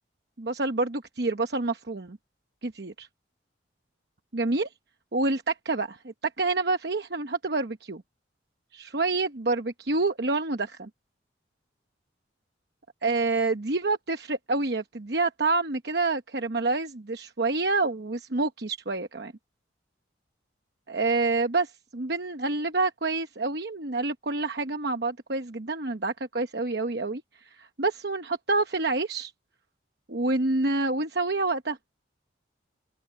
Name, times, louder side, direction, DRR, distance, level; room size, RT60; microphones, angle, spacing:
voice 1, 0.4-2.2 2.6-3.1 4.3-4.7 5.1-8.0 8.7-10.9 13.0-19.3 20.9-29.3 30.1-31.8, right 3 dB, 55° right, 1.0 m, -28 dB
open air
head